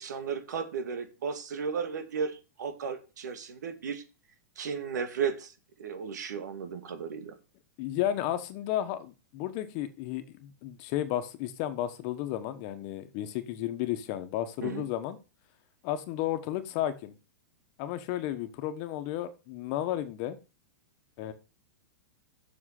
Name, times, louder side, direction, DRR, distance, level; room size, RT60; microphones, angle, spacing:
voice 1, 0.0-4.0 4.6-5.5 5.8-7.3 14.6-14.9, right 6 dB, 90° right, 9 dB, 2.3 m, -34 dB
voice 2, 7.8-15.2 15.8-17.1 17.8-20.4 21.2-21.3, left 12 dB, 40° left, 9 dB, 1.4 m, -33 dB
7.7 x 6.8 x 6.6 m, 0.31 s
supercardioid pair, 160°, 9 cm